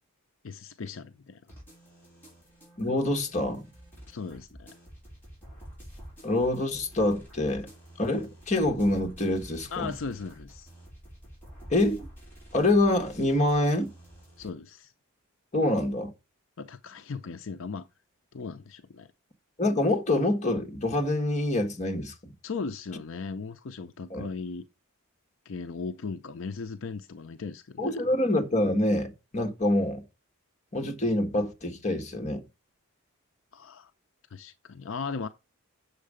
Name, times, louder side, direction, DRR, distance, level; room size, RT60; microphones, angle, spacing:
voice 1, 0.4-1.4 4.1-4.7 9.7-10.7 14.4-14.9 16.6-17.9 18.3-19.1 22.4-24.7 25.5-28.0 33.5-33.9 34.3-35.3, left 4 dB, 65° left, 0.5 m, -37 dB
sound 1, 1.5-14.5, equal, 10° left, 4.9 m, -49 dB
voice 2, 2.8-3.7 6.2-7.7 8.0-9.9 11.7-12.1 12.5-13.9 15.5-16.1 19.6-22.1 24.1-24.3 27.8-30.1 30.7-32.4, left 1 dB, 30° left, 1.4 m, -26 dB
7.7 x 6.5 x 5.0 m
head